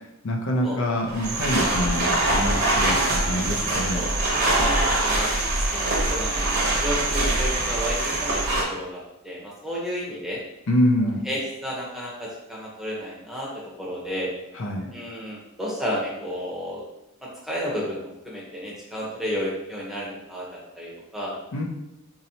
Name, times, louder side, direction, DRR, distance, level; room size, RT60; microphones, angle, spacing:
voice 1, 0.2-4.0 10.7-11.2 14.6-14.8 21.5-21.6, left 1 dB, 60° left, 0 dB, 0.5 m, -25 dB
sound 1, 1.1-8.6, right 1 dB, 45° right, 0.9 m, -24 dB
sound 2, 1.2-8.5, right 6 dB, 70° right, 0.4 m, -32 dB
voice 2, 3.9-5.3 5.7-8.4 8.7-10.4 11.2-13.5 13.8-14.3 14.9-16.8 17.2-21.3, equal, ahead, -5 dB, 0.8 m, -32 dB
4.1 x 2.8 x 2.8 m, 0.88 s
head